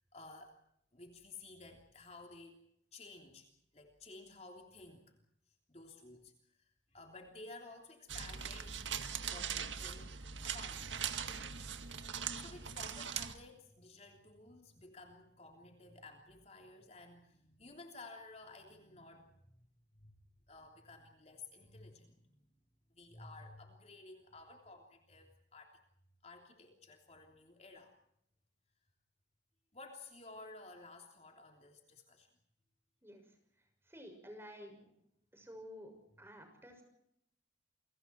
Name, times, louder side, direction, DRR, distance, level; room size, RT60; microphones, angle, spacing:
voice 1, 0.1-0.6 0.9-2.6 2.9-3.5 3.7-5.1 5.7-8.8 9.3-10.8 12.4-19.4 20.0-22.4 22.9-25.8 26.2-27.9 29.7-32.3, left 3 dB, 35° left, 3 dB, 3.2 m, -54 dB
sound 1, 8.1-13.3, right 7 dB, 85° right, 2.0 m, -41 dB
voice 2, 33.9-34.9 35.3-35.9 36.2-36.8, equal, 15° right, 5 dB, 6.4 m, -51 dB
29.5 x 24.0 x 4.6 m, 0.76 s
head